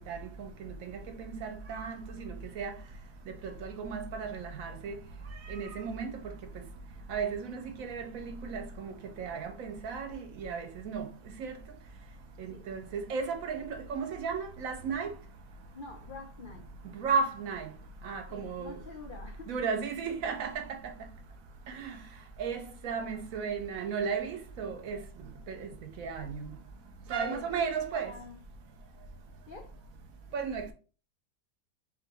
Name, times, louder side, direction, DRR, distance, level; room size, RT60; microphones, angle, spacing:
voice 1, 0.1-0.7 1.4-1.9 2.2-2.7 3.6-5.0 5.5-6.1 7.1-8.2 8.5-8.9 9.2-11.1 11.4-11.5 12.7-15.1 17.0-17.7 18.0-18.7 19.5-20.6 21.7-21.9 22.4-25.0 25.5-25.7 26.0-26.5 27.1-28.1 30.3-30.7, right 5 dB, 65° right, 0.9 m, -34 dB
voice 2, 15.7-16.7 18.3-19.5 22.6-23.2 27.2-28.4 29.5-29.7, left 4 dB, 80° left, 0.4 m, -47 dB
3.8 x 3.4 x 3.0 m
omnidirectional pair, 1.8 m